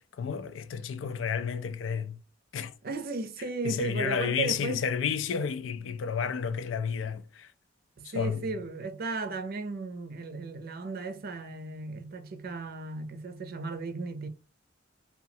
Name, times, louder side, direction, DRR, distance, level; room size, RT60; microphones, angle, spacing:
voice 1, 0.0-2.2 2.5-2.7 3.6-7.5 8.0-8.5, left 6 dB, 70° left, 0.4 m, -31 dB
voice 2, 2.8-4.8 8.0-14.3, right 3 dB, 50° right, 0.5 m, -35 dB
2.8 x 2.3 x 2.7 m
head